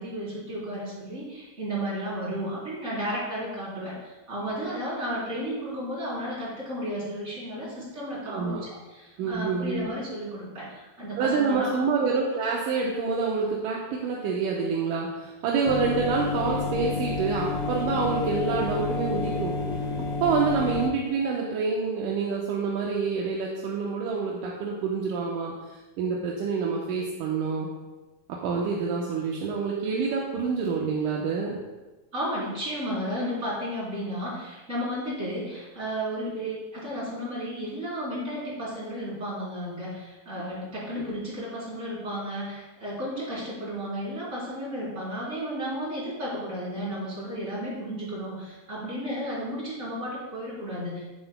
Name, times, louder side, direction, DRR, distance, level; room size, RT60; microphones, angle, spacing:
voice 1, 0.0-11.8 32.1-51.0, equal, 20° right, -6 dB, 3.5 m, -33 dB
voice 2, 8.3-8.7 9.2-9.9 11.2-19.5 20.2-27.7 28.3-31.6, right 5 dB, 70° right, -3 dB, 2.2 m, -27 dB
sound 1, 15.7-20.9, left 4 dB, 85° left, 2.7 m, -29 dB
17.5 x 7.6 x 2.2 m, 1.1 s
omnidirectional pair, 4.4 m